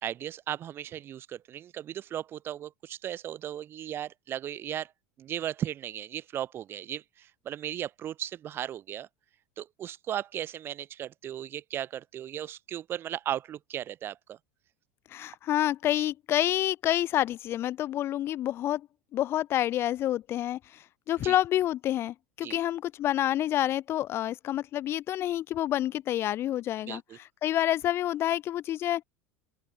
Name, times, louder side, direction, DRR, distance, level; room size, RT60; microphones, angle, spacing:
voice 1, 0.0-4.9 5.2-9.1 9.6-14.4 21.2-21.3 22.4-22.6 26.8-27.2, right 11 dB, 40° right, 1.0 m, -36 dB
voice 2, 15.1-18.9 19.1-29.0, left 12 dB, 45° left, 0.5 m, -28 dB
open air
supercardioid pair, 105°, 6 cm